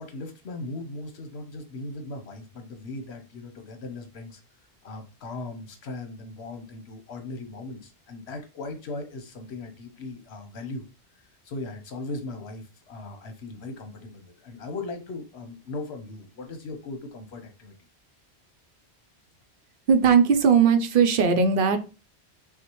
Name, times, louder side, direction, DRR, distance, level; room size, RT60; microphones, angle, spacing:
voice 1, 0.0-4.4 4.8-10.8 11.4-17.7, left 2 dB, 80° left, 6 dB, 1.1 m, -38 dB
voice 2, 19.9-21.8, right 6 dB, 60° right, 8 dB, 0.7 m, -19 dB
6.0 x 2.1 x 3.0 m, 0.32 s
omnidirectional pair, 1.1 m